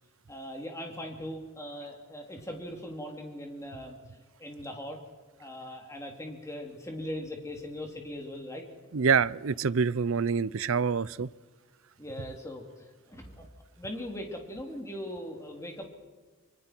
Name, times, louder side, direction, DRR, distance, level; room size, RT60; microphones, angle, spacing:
voice 1, 0.3-4.0 4.4-5.0 5.4-8.6 12.0-13.4 13.8-15.9, equal, 15° left, 1 dB, 3.2 m, -40 dB
voice 2, 8.9-11.3, right 5 dB, 75° right, 19 dB, 0.6 m, -26 dB
25.5 x 25.0 x 4.6 m, 1.3 s
head